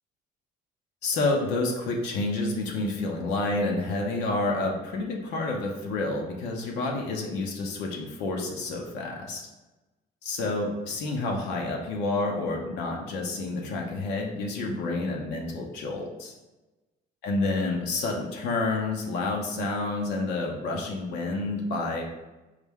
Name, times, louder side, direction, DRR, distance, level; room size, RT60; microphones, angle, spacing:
voice 1, 1.0-9.4 10.2-16.3 17.2-22.0, left 2 dB, 85° left, 0 dB, 0.7 m, -29 dB
4.8 x 2.2 x 3.5 m, 1.1 s
cardioid pair, 110°, 17 cm